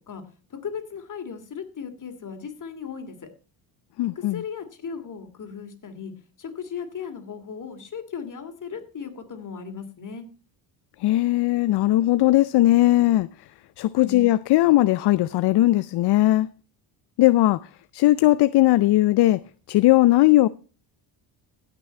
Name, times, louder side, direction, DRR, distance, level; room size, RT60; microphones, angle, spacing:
voice 1, 0.5-3.3 4.1-6.1 6.4-10.3 14.0-14.3, left 6 dB, 40° left, 2.8 m, -36 dB
voice 2, 4.0-4.4 11.0-13.3 13.8-16.5 17.2-17.7 17.9-19.4 19.7-20.5, left 16 dB, 55° left, 0.5 m, -18 dB
16.0 x 6.2 x 4.4 m
cardioid pair, 90°, 48 cm